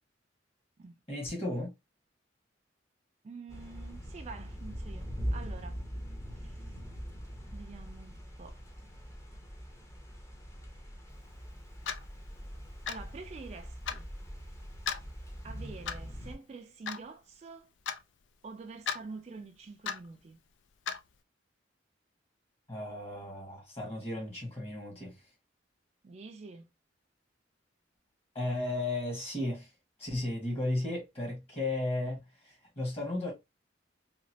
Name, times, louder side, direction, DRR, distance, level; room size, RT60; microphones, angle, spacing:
voice 1, 1.1-1.7 22.7-25.2 28.3-29.7 30.0-33.3, left 2 dB, 30° left, 1.2 m, -34 dB
voice 2, 3.2-5.8 6.3-6.8 7.5-8.6 12.9-14.1 15.4-17.7 18.4-20.4 26.0-26.7, right 4 dB, 35° right, 0.3 m, -47 dB
sound 1, 3.5-16.3, equal, 15° left, 0.6 m, -42 dB
Clock, 11.9-12.1 12.9-13.1 13.9-14.0 14.9-15.0 15.9-16.1 16.9-17.0 17.9-18.0 18.9-19.0 19.9-20.1 20.9-21.0, left 7 dB, 80° left, 0.4 m, -35 dB
2.9 x 2.4 x 2.7 m
head